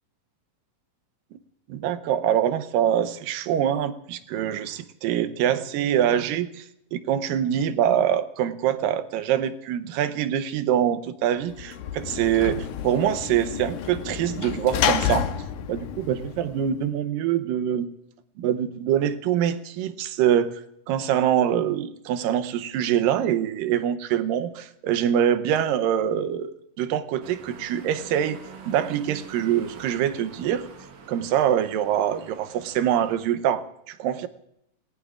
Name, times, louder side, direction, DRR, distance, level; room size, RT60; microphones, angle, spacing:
voice 1, 1.7-6.7 6.9-15.3 15.7-17.9 18.4-20.5 20.9-26.5 26.8-28.4 28.7-30.7 31.1-34.3, right 10 dB, 80° right, 12 dB, 2.5 m, -24 dB
Sliding door / Slam, 11.5-16.9, left 9 dB, 75° left, 2.4 m, -30 dB
sound 1, 27.2-33.2, right 5 dB, 65° right, 2.8 m, -45 dB
28.5 x 19.0 x 2.5 m, 0.79 s
omnidirectional pair, 4.0 m